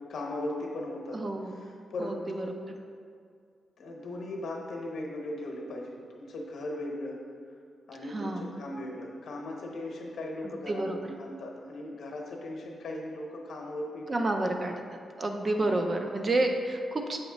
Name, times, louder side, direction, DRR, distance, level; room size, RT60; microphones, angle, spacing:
voice 1, 0.1-1.2 1.6-2.6 3.8-7.2 7.9-14.4 15.6-15.7, left 1 dB, 65° left, 0 dB, 0.9 m, -38 dB
voice 2, 1.1-1.6 2.0-2.5 8.1-8.5 10.4-11.0 14.1-14.7 15.2-17.2, right 2 dB, 25° right, 3 dB, 0.4 m, -29 dB
7.1 x 3.0 x 5.0 m, 2.2 s
wide cardioid pair, 175°, 0 cm